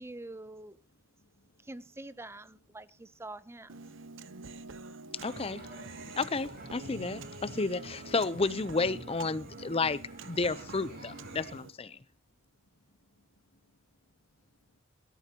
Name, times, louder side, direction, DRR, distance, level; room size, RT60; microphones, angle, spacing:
voice 1, 0.0-0.8 1.6-3.8, right 2 dB, 15° right, 0.6 m, -45 dB
voice 2, 0.8-2.2 2.7-2.8 3.1-3.3 3.8-6.2 11.9-14.8, left 1 dB, 80° left, 2.5 m, -71 dB
Human voice, 3.7-11.7, right 3 dB, 70° right, 0.9 m, -47 dB
voice 3, 5.2-5.6 6.2-10.0 10.3-12.0, left 3 dB, 30° left, 0.6 m, -31 dB
sound 1, 5.2-11.6, right 1 dB, 55° right, 7.2 m, -48 dB
23.5 x 13.5 x 2.9 m
head